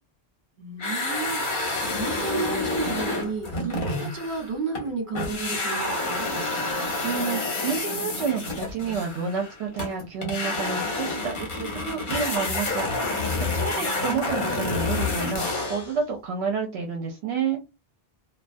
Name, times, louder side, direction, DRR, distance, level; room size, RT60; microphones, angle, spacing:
voice 1, 0.6-6.3 13.7-14.6, right 4 dB, 50° right, 1.2 m, -33 dB
sound 1, 0.8-4.9 5.1-15.9, left 2 dB, 55° left, 1.0 m, -28 dB
voice 2, 7.0-17.6, right 6 dB, 80° right, 0.8 m, -30 dB
2.3 x 2.3 x 2.5 m
omnidirectional pair, 1.1 m